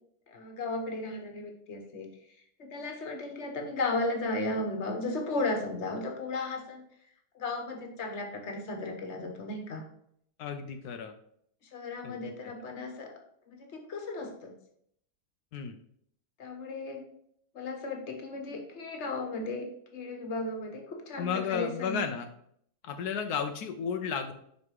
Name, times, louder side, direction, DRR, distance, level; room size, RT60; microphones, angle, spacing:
voice 1, 0.3-2.1 2.6-6.8 7.3-9.8 11.7-13.1 13.5-14.5 16.4-17.0 17.5-19.7 19.9-22.0, left 2 dB, 50° left, 3 dB, 1.5 m, -35 dB
voice 2, 10.4-11.1 12.0-12.5 15.5-15.8 21.2-22.3 22.8-24.3, left 7 dB, 85° left, 6 dB, 1.2 m, -33 dB
5.3 x 5.3 x 4.7 m, 0.67 s
omnidirectional pair, 1.6 m